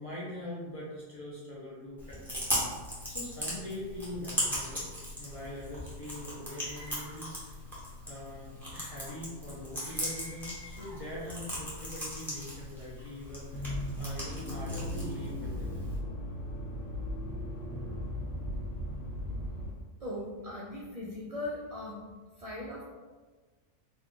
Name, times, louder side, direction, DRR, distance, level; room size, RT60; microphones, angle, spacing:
voice 1, 0.0-2.6 3.1-4.9 5.2-7.6 8.1-15.7, left 1 dB, 40° left, -7 dB, 0.6 m, -43 dB
Chewing mastication, 2.0-16.0, equal, ahead, 0.8 m, -38 dB
Screaming, 6.5-7.3 9.7-11.1, left 2 dB, 50° right, 1.0 m, -51 dB
Accelerating revving vroom, 13.5-19.7, equal, 80° left, 0.9 m, -37 dB
voice 2, 20.0-22.0 22.4-22.8, left 1 dB, 65° right, -5 dB, 0.3 m, -39 dB
2.5 x 2.3 x 3.7 m, 1.3 s
omnidirectional pair, 1.3 m